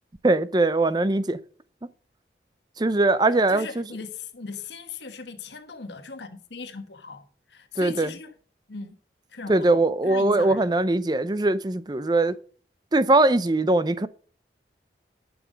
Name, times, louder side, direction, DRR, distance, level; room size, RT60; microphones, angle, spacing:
voice 1, 0.2-1.4 2.8-3.8 7.8-8.1 9.5-12.4 12.9-14.1, right 2 dB, 25° right, 0.5 m, -21 dB
voice 2, 3.5-7.2 7.5-8.3 8.7-9.0 9.3-10.7, left 4 dB, 75° left, 1.3 m, -38 dB
11.0 x 7.0 x 5.2 m
head